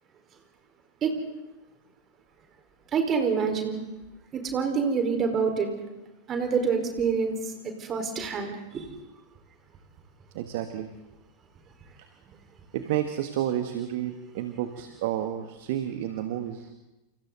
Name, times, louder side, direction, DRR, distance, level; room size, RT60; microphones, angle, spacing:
voice 1, 2.9-3.8 4.3-5.7 6.3-8.9, right 5 dB, 25° right, 4 dB, 4.7 m, -27 dB
voice 2, 10.3-10.9 12.7-16.7, right 11 dB, 50° right, 8 dB, 1.7 m, -30 dB
29.5 x 29.0 x 4.0 m, 1.0 s
figure-of-eight pair, 90°, 0 cm